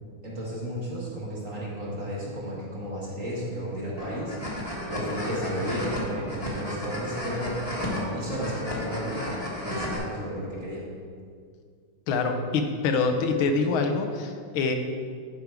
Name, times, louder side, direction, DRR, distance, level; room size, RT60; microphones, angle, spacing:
voice 1, 0.2-4.4 4.8-7.6 7.8-10.8, equal, 40° right, -6 dB, 2.0 m, -33 dB
sound 1, 4.0-10.0, left 1 dB, 20° left, 1.3 m, -33 dB
voice 2, 12.1-14.7, left 4 dB, 80° left, 5 dB, 1.6 m, -25 dB
10.5 x 5.2 x 4.6 m, 2.1 s
omnidirectional pair, 2.3 m